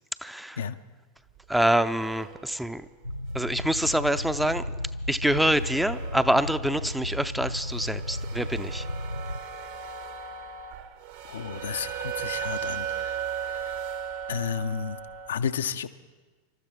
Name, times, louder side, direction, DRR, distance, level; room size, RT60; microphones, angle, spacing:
voice 1, 0.2-0.6 1.5-2.9 3.3-4.6 5.1-8.9, right 1 dB, 5° right, 12 dB, 0.5 m, -26 dB
sound 1, 1.4-3.2 3.6-3.7 4.5-4.6 5.0-5.1 5.4-7.0 7.5-15.3, right 8 dB, 50° right, 0.9 m, -37 dB
sound 2, 3.0-9.4, left 1 dB, 85° right, 0.4 m, -34 dB
voice 2, 11.2-13.9 14.3-15.0 15.3-15.9, left 7 dB, 65° left, 10 dB, 0.5 m, -32 dB
27.5 x 13.0 x 3.5 m, 1.3 s
figure-of-eight pair, 90°, 0 cm